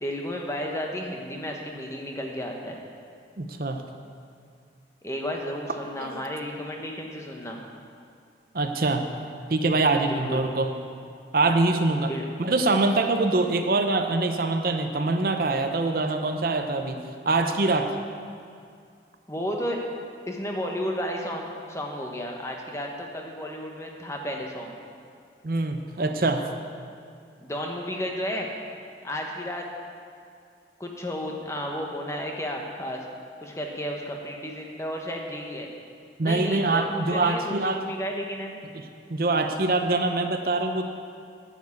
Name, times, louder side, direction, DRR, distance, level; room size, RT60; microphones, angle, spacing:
voice 1, 0.0-2.8 5.0-7.6 10.0-10.5 12.1-12.3 19.3-19.8 20.3-24.7 27.4-28.5 29.0-29.7 30.8-33.0 33.4-35.7 36.2-38.6, equal, 15° left, 1 dB, 1.1 m, -33 dB
voice 2, 3.4-3.8 6.0-6.2 8.5-9.1 9.5-10.7 11.3-12.1 12.4-17.9 25.4-26.5 36.2-37.8 39.1-40.9, right 2 dB, 50° right, 6 dB, 0.7 m, -24 dB
10.5 x 7.2 x 8.5 m, 2.3 s
head